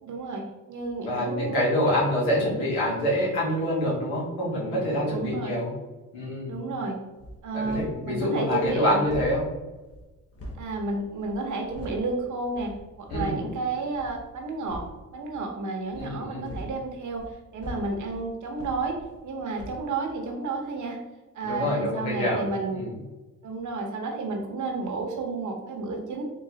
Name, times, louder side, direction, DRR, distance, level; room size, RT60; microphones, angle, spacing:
voice 1, 0.0-0.4 0.7-1.6 5.1-5.5 6.5-7.0 7.4-9.0 10.6-12.7 13.0-14.8 15.1-17.2 17.5-18.9 19.2-21.0 21.3-22.8 23.4-26.2, right 3 dB, 55° right, 2 dB, 1.0 m, -31 dB
voice 2, 1.0-5.7 6.1-6.5 7.5-9.5 13.1-13.4 15.9-16.5 21.4-22.4 22.7-22.9, equal, 85° left, -5 dB, 1.4 m, -26 dB
sound 1, 7.2-8.1 8.4-12.1 12.5-13.5 13.9-14.3 14.6-15.0 15.8-19.3 19.6-19.9, equal, 40° left, 0.9 m, -42 dB
3.9 x 2.6 x 2.8 m, 1.2 s
supercardioid pair, 55°, 36 cm